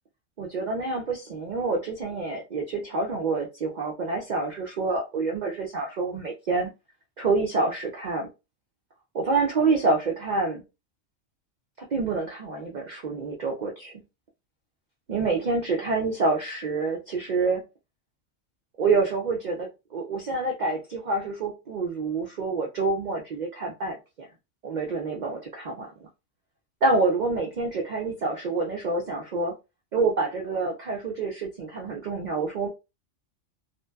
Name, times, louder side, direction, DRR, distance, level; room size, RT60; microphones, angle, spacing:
voice 1, 0.4-6.7 7.2-8.3 9.1-10.6 11.8-14.0 15.1-17.6 18.8-24.3 24.6-25.9 26.8-29.6 29.9-32.7, right 3 dB, 75° right, 0.4 m, -27 dB
2.6 x 2.1 x 2.2 m
omnidirectional pair, 1.3 m